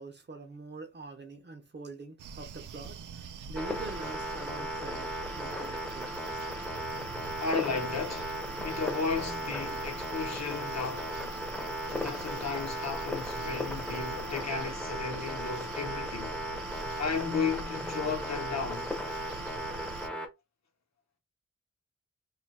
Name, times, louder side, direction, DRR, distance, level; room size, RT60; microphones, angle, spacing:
voice 1, 0.0-3.0 3.5-6.1, right 3 dB, 35° right, 0.6 m, -44 dB
sound 1, 2.2-20.1, right 6 dB, 85° right, 0.5 m, -44 dB
sound 2, 3.6-20.3, equal, 5° left, 0.6 m, -36 dB
voice 2, 7.4-11.2 11.9-16.4 17.0-18.9, left 5 dB, 60° left, 0.9 m, -34 dB
2.7 x 2.3 x 4.1 m
wide cardioid pair, 155°, 30 cm